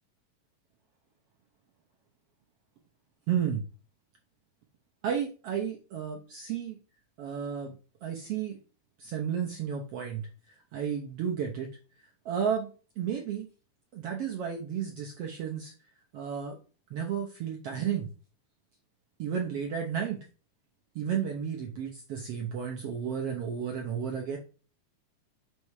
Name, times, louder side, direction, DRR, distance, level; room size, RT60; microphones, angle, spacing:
voice 1, 3.3-3.7 5.0-6.8 7.2-7.8 8.0-8.6 9.0-11.8 12.2-12.7 13.0-13.5 13.9-15.7 16.1-16.6 16.9-18.1 19.2-20.2 20.9-24.4, right 8 dB, 75° right, 1 dB, 1.3 m, -32 dB
6.9 x 3.2 x 4.6 m, 0.36 s
omnidirectional pair, 3.7 m